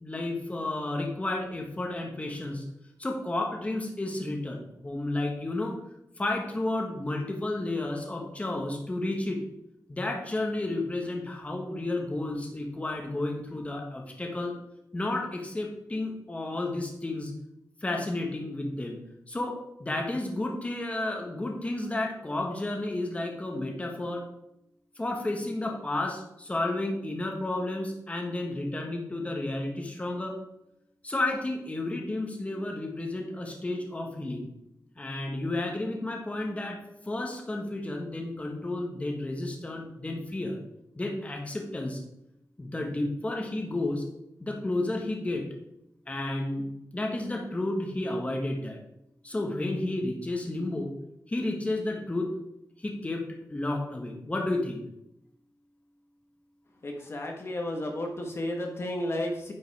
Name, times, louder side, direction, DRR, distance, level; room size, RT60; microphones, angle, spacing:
voice 1, 0.0-2.6 3.0-5.8 6.2-9.4 9.9-14.5 14.9-17.3 17.8-24.2 25.0-30.3 31.0-34.5 35.0-36.8 37.0-40.6 41.0-42.0 42.6-44.0 44.4-45.5 46.1-46.6 46.9-48.8 49.2-50.9 51.3-52.4 52.8-54.8, left 2 dB, 20° left, 1 dB, 1.4 m, -32 dB
voice 2, 56.8-59.5, left 1 dB, 40° left, 1 dB, 1.3 m, -32 dB
9.7 x 5.3 x 4.8 m, 0.82 s
wide cardioid pair, 135°, 7 cm